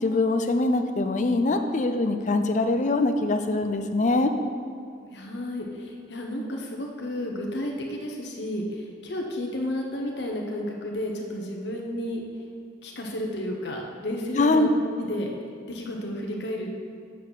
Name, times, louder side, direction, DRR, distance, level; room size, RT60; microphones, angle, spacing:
voice 1, 0.0-4.3 14.3-14.7, left 2 dB, 40° left, 7 dB, 0.5 m, -23 dB
voice 2, 5.1-12.2 12.8-14.7 15.0-15.3 15.7-16.8, left 1 dB, 65° left, 0 dB, 1.1 m, -32 dB
7.4 x 4.2 x 6.2 m, 2.3 s
head